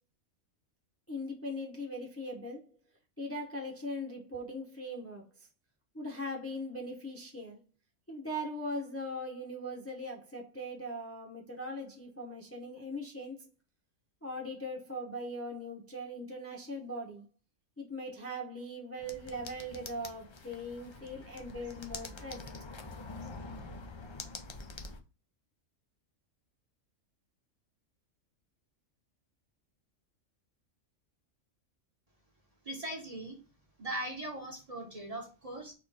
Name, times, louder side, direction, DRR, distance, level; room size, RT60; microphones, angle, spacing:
voice 1, 1.1-2.6 3.2-5.5 5.9-7.6 8.1-13.5 14.2-17.2 17.8-22.4, equal, 15° left, 0.7 m, -40 dB
sound 1, 19.0-25.0, left 3 dB, 50° left, 0.3 m, -46 dB
voice 2, 32.6-33.4 33.8-35.7, right 1 dB, 30° right, 0.9 m, -39 dB
4.3 x 3.1 x 4.0 m
omnidirectional pair, 1.3 m